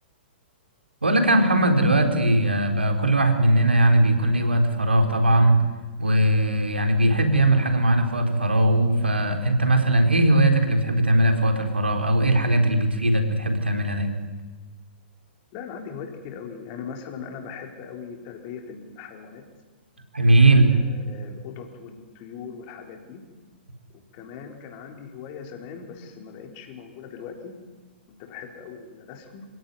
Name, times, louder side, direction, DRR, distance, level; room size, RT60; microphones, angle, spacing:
voice 1, 1.0-5.6 6.0-14.1 20.1-20.7, right 1 dB, 75° right, 5 dB, 4.0 m, -19 dB
voice 2, 15.5-19.5 20.7-23.2 23.9-27.5 28.1-29.5, left 6 dB, 35° left, 3 dB, 4.3 m, -40 dB
27.5 x 17.0 x 9.6 m, 1.3 s
figure-of-eight pair, 110°, 6 cm